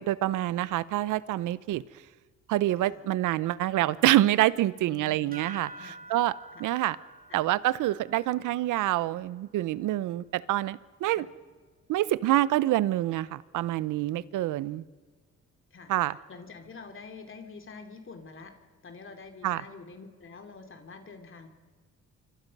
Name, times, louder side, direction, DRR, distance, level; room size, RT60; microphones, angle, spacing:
voice 1, 0.0-1.8 2.5-5.7 6.1-6.3 6.6-7.0 7.3-11.3 11.9-14.8 15.9-16.2 19.4-19.6, right 15 dB, 85° right, 19 dB, 0.8 m, -26 dB
voice 2, 4.8-5.4 5.8-6.9 7.3-7.4 11.1-11.3 15.7-18.6 18.8-21.5, left 4 dB, 45° left, 5 dB, 3.0 m, -47 dB
sound 1, 5.3-10.3, right 4 dB, 30° right, 3.4 m, -49 dB
26.5 x 25.0 x 5.5 m, 1.4 s
cardioid pair, 90°, 30 cm